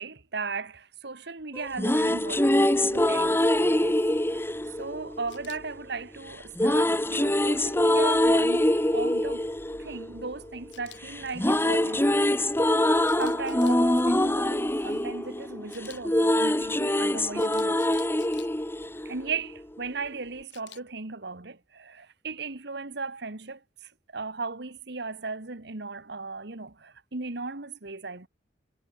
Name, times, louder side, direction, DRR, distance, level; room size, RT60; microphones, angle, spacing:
voice 1, 0.0-4.0 4.3-4.4 4.8-9.4 9.8-12.4 13.2-18.0 19.0-28.3, right 4 dB, 65° right, 1.7 m, -37 dB
sound 1, 1.5-5.7 6.6-10.8 11.1-19.6, left 1 dB, 15° left, 1.9 m, -24 dB
Camera, 5.3-5.6 10.7-11.0 13.0-13.8 15.7-16.0 17.4-18.5 20.5-20.8, left 13 dB, 80° left, 5.9 m, -49 dB
head